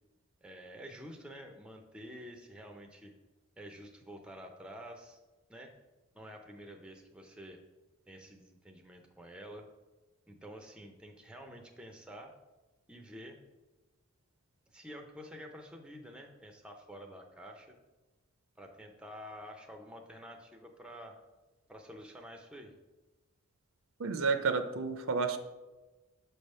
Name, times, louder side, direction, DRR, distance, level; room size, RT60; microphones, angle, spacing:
voice 1, 0.4-3.1 3.6-5.2 5.5-5.7 6.1-7.6 8.1-9.7 10.3-12.3 12.9-13.4 14.7-17.8 18.6-21.2 21.7-22.7, equal, 5° right, 3 dB, 0.5 m, -49 dB
voice 2, 24.0-25.4, right 4 dB, 65° right, 8 dB, 0.5 m, -30 dB
6.6 x 3.4 x 5.4 m, 1.2 s
head